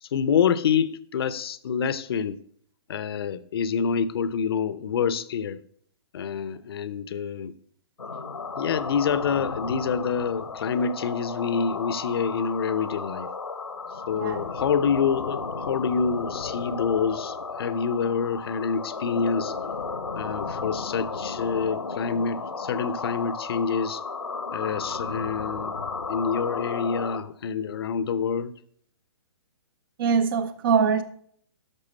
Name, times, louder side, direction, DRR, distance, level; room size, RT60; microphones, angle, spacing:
voice 1, 0.0-2.4 2.9-5.6 6.1-7.5 8.6-13.3 14.1-19.5 20.2-24.0 24.5-25.7 26.1-28.5, left 6 dB, 55° left, 0.6 m, -27 dB
sound 1, 8.0-27.2, left 4 dB, 85° left, 1.0 m, -34 dB
voice 2, 14.1-14.5 30.0-31.0, right 6 dB, 50° right, 0.7 m, -23 dB
11.0 x 6.6 x 4.2 m
figure-of-eight pair, 125°, 15 cm